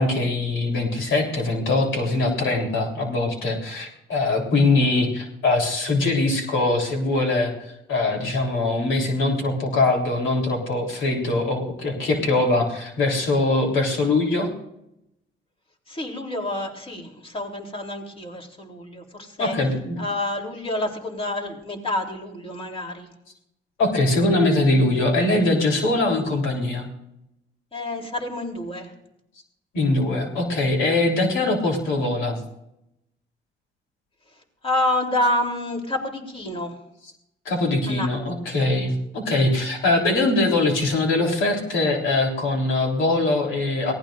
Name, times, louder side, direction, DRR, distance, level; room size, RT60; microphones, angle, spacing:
voice 1, 0.0-14.5 19.4-20.0 23.8-26.9 29.7-32.4 37.5-43.9, left 2 dB, 85° left, 1 dB, 3.7 m, -22 dB
voice 2, 15.9-23.1 27.7-28.9 34.6-36.8 37.8-38.4 38.7-38.8, left 1 dB, 30° left, 1 dB, 3.5 m, -28 dB
23.5 x 18.0 x 2.6 m, 0.83 s
cardioid pair, 90°, 20 cm